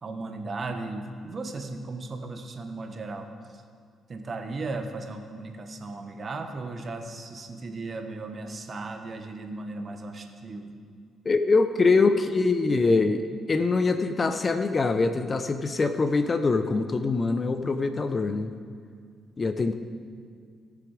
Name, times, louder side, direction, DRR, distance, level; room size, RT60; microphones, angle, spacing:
voice 1, 0.0-3.3 4.1-10.7 11.8-13.0, right 3 dB, 40° right, 6 dB, 1.1 m, -36 dB
voice 2, 11.2-18.5 19.4-19.7, left 3 dB, 35° left, 9 dB, 0.6 m, -24 dB
17.5 x 7.0 x 4.8 m, 2.1 s
cardioid pair, 90°, 0 cm